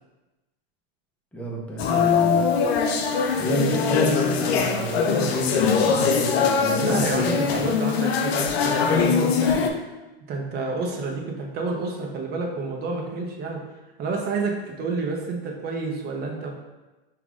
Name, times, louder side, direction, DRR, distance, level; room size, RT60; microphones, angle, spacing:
voice 1, 1.3-2.4 3.4-7.5, right 1 dB, 5° left, -3 dB, 0.6 m, -29 dB
sound 1, 1.8-9.7, left 6 dB, 80° left, 0.6 m, -22 dB
voice 2, 6.8-9.6 10.3-13.6 14.0-16.5, right 3 dB, 30° right, 1 dB, 0.7 m, -29 dB
5.5 x 2.5 x 2.4 m, 1.1 s
hypercardioid pair, 115°, 31 cm